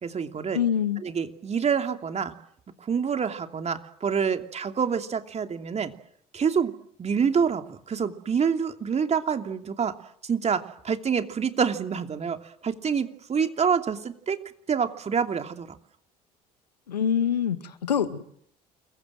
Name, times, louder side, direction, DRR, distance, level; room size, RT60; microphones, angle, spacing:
voice 1, 0.0-0.6 1.0-2.3 2.8-5.9 6.3-6.7 7.0-9.9 10.2-12.4 12.6-14.4 14.7-15.8, right 6 dB, 30° right, 6 dB, 2.9 m, -27 dB
voice 2, 0.5-1.0 16.9-18.2, left 8 dB, 85° left, 11 dB, 2.0 m, -25 dB
29.0 x 22.5 x 7.7 m, 0.65 s
figure-of-eight pair, 60°, 21 cm